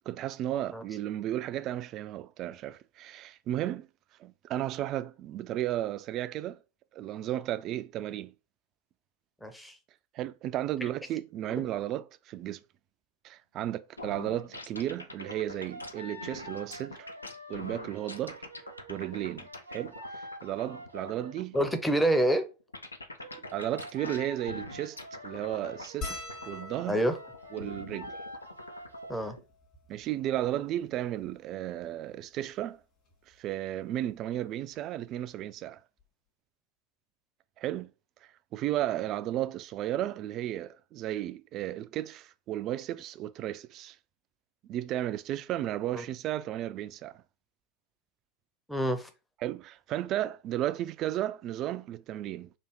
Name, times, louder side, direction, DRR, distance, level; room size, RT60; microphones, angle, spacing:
voice 1, 0.1-3.9 4.2-6.6 6.9-8.3 10.1-12.6 13.2-17.1 17.5-18.5 18.9-21.6 23.3-27.0 27.5-28.1 29.9-32.8 33.3-35.8 37.6-37.9 38.5-44.0 44.7-47.2 49.4-52.5, right 13 dB, 35° right, 0.3 m, -34 dB
voice 2, 9.4-9.7 21.5-22.5 26.9-27.2 29.1-29.4 45.9-46.0 48.7-49.1, right 1 dB, 5° left, 0.6 m, -27 dB
sound 1, 14.0-29.4, left 2 dB, 80° left, 0.5 m, -44 dB
sound 2, 15.2-21.4 23.2-29.4, equal, 85° right, 0.8 m, -47 dB
sound 3, 26.0-30.6 31.4-31.5 31.6-31.8 33.1-33.3 34.8-34.9 35.1-35.3, left 3 dB, 40° left, 1.7 m, -45 dB
3.4 x 2.5 x 4.5 m
figure-of-eight pair, 90°, 0 cm